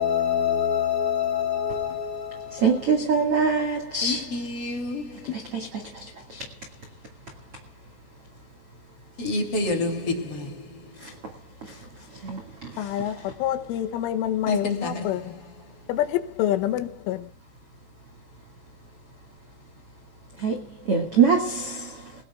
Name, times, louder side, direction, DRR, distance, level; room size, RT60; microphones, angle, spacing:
voice 1, 0.0-2.8 4.0-5.1 9.2-10.5 14.5-15.1, left 5 dB, 35° left, 3.0 m, -27 dB
voice 2, 2.6-4.2 5.5-5.7 20.4-20.5 20.9-21.7, right 5 dB, 55° right, 1.5 m, -22 dB
voice 3, 12.8-13.1 13.4-15.2 15.9-17.2, left 11 dB, 80° left, 3.3 m, -26 dB
21.0 x 19.0 x 2.3 m
omnidirectional pair, 5.7 m